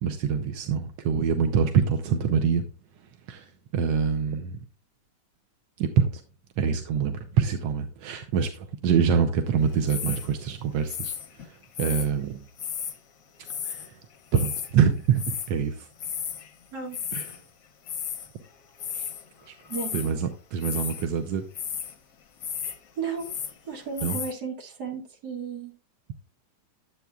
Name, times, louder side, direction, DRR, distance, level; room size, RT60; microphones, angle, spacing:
voice 1, 0.0-2.6 3.3-3.4 3.7-4.5 5.8-6.1 6.6-11.1 11.8-12.4 13.6-13.8 14.3-15.9 17.1-17.2 18.9-19.1 19.5-19.6 19.9-21.4 24.0-24.2, right 7 dB, 85° right, 6 dB, 1.4 m, -25 dB
sound 1, 9.9-10.3 10.9-12.1 12.6-13.0 13.4-13.9 14.1-14.7 15.2-15.5 16.0-16.5 16.8-17.4 17.9-18.3 18.8-19.2 19.6-20.1 20.6-21.1 21.5-21.9 22.4-22.8 23.0-23.6 24.0-24.3, left 8 dB, 60° left, 1.1 m, -34 dB
voice 2, 19.7-20.1 23.0-23.3 23.7-25.7, right 5 dB, 65° right, 1 dB, 2.3 m, -34 dB
11.5 x 8.0 x 2.3 m, 0.37 s
omnidirectional pair, 1.9 m